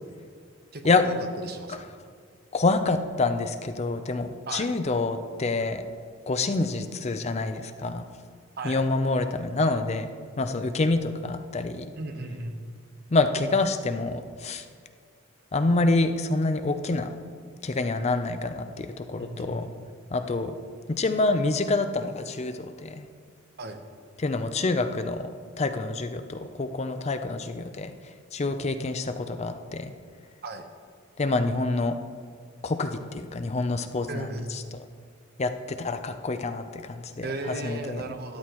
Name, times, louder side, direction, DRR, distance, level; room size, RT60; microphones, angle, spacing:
voice 1, 0.7-1.9 4.5-4.7 8.6-8.8 12.0-12.6 19.2-19.8 23.6-23.8 30.4-30.7 34.1-34.6 37.2-38.4, right 2 dB, 50° right, 6 dB, 0.9 m, -36 dB
voice 2, 2.5-5.8 6.3-8.0 8.6-10.1 10.4-11.9 13.1-14.6 15.5-17.1 17.6-19.7 20.1-20.6 21.0-23.1 24.2-25.3 25.6-27.9 28.3-29.9 31.2-32.0 32.6-34.6 35.4-37.3 37.6-38.0, left 3 dB, 35° left, 8 dB, 0.5 m, -27 dB
13.0 x 11.5 x 3.0 m, 2.1 s
head